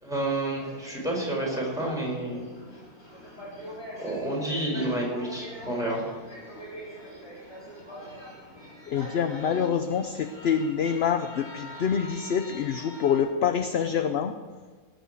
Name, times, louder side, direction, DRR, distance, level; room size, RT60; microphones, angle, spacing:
voice 1, 0.0-2.4 4.0-6.0, right 1 dB, ahead, -3 dB, 4.8 m, -29 dB
sound 1, 0.6-13.2, equal, 40° left, 6.0 m, -43 dB
voice 2, 8.9-14.3, left 7 dB, 55° left, 8 dB, 0.7 m, -26 dB
18.5 x 7.2 x 8.2 m, 1.4 s
omnidirectional pair, 1.6 m